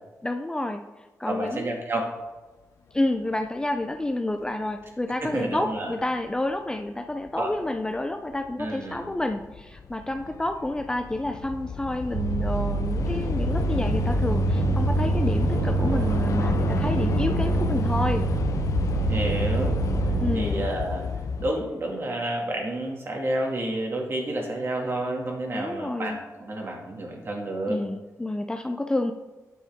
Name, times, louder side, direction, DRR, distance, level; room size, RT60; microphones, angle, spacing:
voice 1, 0.2-0.8 1.2-1.8 2.9-18.3 20.2-20.6 25.5-26.2 27.7-29.1, left 1 dB, 15° left, 6 dB, 0.5 m, -29 dB
voice 2, 1.3-2.1 5.2-5.9 7.4-7.5 8.6-9.0 19.1-19.7 20.0-21.0 21.4-27.8, right 1 dB, 45° right, 0 dB, 2.3 m, -30 dB
Train / Subway metro underground, 7.5-7.6 8.4-8.7 9.0-21.5, left 6 dB, 70° left, 0.7 m, -29 dB
sound 1, 12.1-20.4, right 7 dB, 75° right, 0.7 m, -27 dB
9.4 x 7.9 x 3.6 m, 1.2 s
cardioid pair, 100°, 6 cm